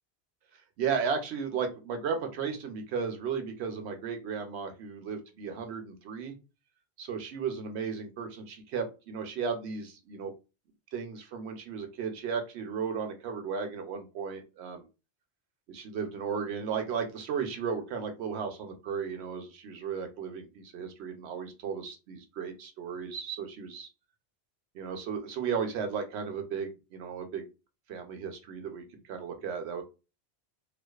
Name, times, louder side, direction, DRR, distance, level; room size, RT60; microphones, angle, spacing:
voice 1, 0.8-6.3 7.0-10.3 10.9-14.9 15.7-23.9 24.7-27.5 27.9-29.8, right 6 dB, 80° right, 6 dB, 0.8 m, -35 dB
2.4 x 2.2 x 2.2 m, 0.29 s
omnidirectional pair, 1.1 m